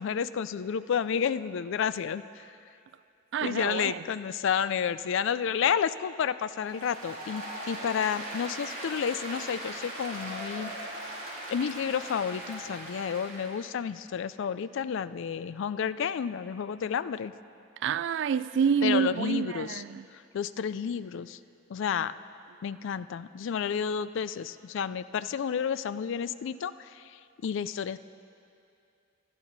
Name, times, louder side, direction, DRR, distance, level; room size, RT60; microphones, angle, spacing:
voice 1, 0.0-2.5 3.4-10.7 11.5-17.3 18.8-19.8 20.1-21.4 21.7-22.1 22.6-28.0, left 7 dB, 65° left, 0.3 m, -31 dB
voice 2, 3.3-4.0 17.8-20.1, right 7 dB, 60° right, 0.3 m, -28 dB
Applause, 6.6-13.6, right 1 dB, 45° right, 4.0 m, -39 dB
20.5 x 11.5 x 4.0 m
head